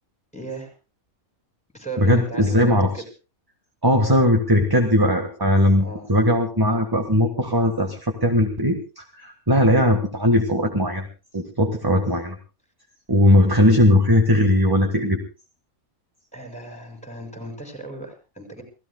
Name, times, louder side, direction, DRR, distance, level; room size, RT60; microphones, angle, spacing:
voice 1, 0.3-0.7 1.7-3.0 5.8-6.1 16.3-18.6, right 2 dB, 5° left, 3 dB, 6.4 m, -36 dB
voice 2, 2.0-2.9 3.8-11.1 11.3-12.4 13.1-15.2, left 1 dB, 15° right, 4 dB, 1.5 m, -19 dB
29.0 x 17.0 x 2.3 m, 0.34 s
omnidirectional pair, 1.5 m